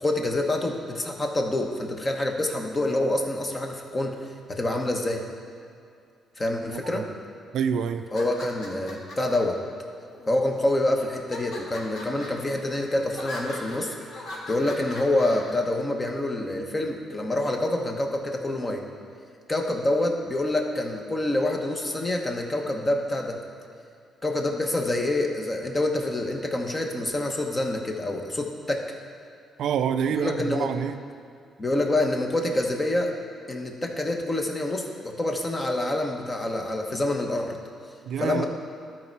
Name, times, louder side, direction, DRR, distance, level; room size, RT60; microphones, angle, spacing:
voice 1, 0.0-4.2 4.5-5.2 6.4-7.0 8.1-9.6 10.3-13.9 14.5-18.8 19.5-23.4 24.2-28.8 30.2-30.7 31.6-33.1 33.5-37.6 38.2-38.4, left 1 dB, 25° left, 2 dB, 1.1 m, -26 dB
voice 2, 6.7-7.0 7.5-8.1 29.6-30.9 38.1-38.4, right 7 dB, 75° right, 9 dB, 0.4 m, -27 dB
sound 1, 8.0-9.4 10.1-10.6 11.1-15.5, left 1 dB, 75° left, 1.6 m, -40 dB
12.5 x 4.4 x 4.6 m, 2.4 s
cardioid pair, 90°, 0 cm